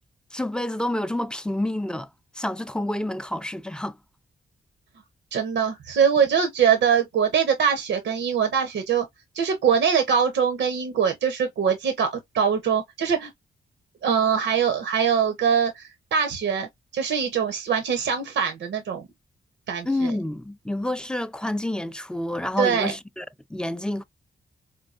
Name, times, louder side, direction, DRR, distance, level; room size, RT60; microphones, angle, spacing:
voice 1, 0.3-2.1 2.3-4.0 19.8-24.0, left 1 dB, 5° left, 0.4 m, -28 dB
voice 2, 5.3-9.1 9.3-13.3 14.0-16.7 16.9-19.1 19.7-20.1 22.6-22.9, right 7 dB, 80° right, 0.7 m, -23 dB
4.5 x 2.3 x 2.4 m
cardioid pair, 55°, 19 cm